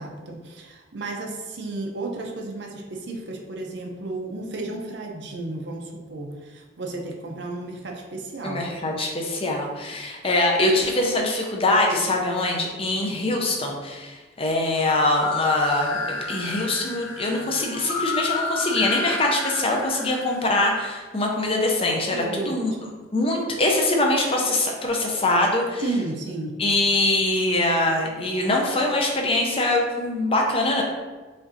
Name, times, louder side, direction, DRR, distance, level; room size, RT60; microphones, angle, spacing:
voice 1, 0.0-8.6 22.1-22.5 25.8-26.5, right 2 dB, 60° right, 1 dB, 0.6 m, -33 dB
voice 2, 8.4-22.7 23.1-25.8 26.6-30.8, left 2 dB, 30° left, 0 dB, 0.5 m, -23 dB
sound 1, 14.8-20.6, left 3 dB, 85° left, 0.5 m, -31 dB
5.1 x 2.6 x 2.6 m, 1.3 s
head